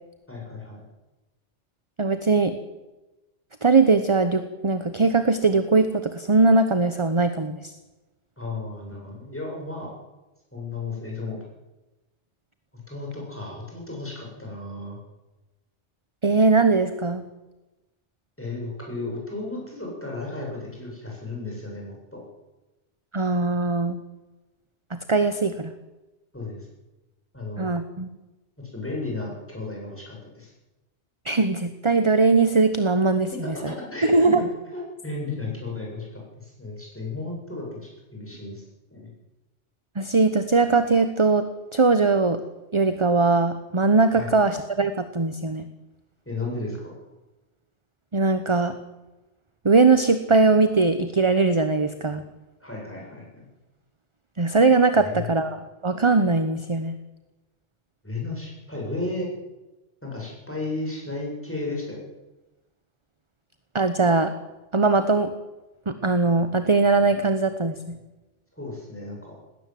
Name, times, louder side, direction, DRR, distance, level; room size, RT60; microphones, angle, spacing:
voice 1, 0.3-0.8 8.4-10.0 10.5-11.4 12.9-15.0 18.4-22.2 26.3-26.7 27.3-27.7 28.7-30.5 33.5-34.4 34.7-38.6 38.9-39.1 44.1-44.3 46.3-46.9 52.6-53.4 55.0-55.2 58.0-59.3 60.0-62.0 68.6-69.4, left 2 dB, 10° left, -2 dB, 7.8 m, -34 dB
voice 2, 2.0-2.5 3.6-7.7 16.2-17.2 23.1-24.0 24.9-25.7 27.6-28.1 31.2-33.3 34.1-34.4 40.0-41.4 41.7-42.4 42.7-45.7 48.1-48.7 49.6-52.2 54.4-55.6 55.8-56.9 63.7-64.3 64.7-65.3 65.9-67.8, right 3 dB, 25° right, 10 dB, 1.0 m, -20 dB
19.5 x 17.5 x 7.7 m, 1.1 s
omnidirectional pair, 1.2 m